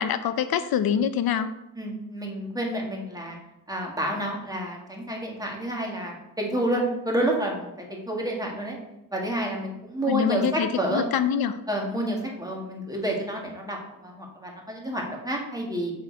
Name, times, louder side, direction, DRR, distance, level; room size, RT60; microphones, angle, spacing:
voice 1, 0.0-1.5 10.1-11.6, left 8 dB, 85° left, 11 dB, 0.6 m, -25 dB
voice 2, 1.8-3.4 3.7-8.8 9.1-11.0 11.7-15.9, right 1 dB, 10° right, -1 dB, 1.8 m, -29 dB
7.7 x 6.3 x 4.6 m, 0.91 s
wide cardioid pair, 150°, 35 cm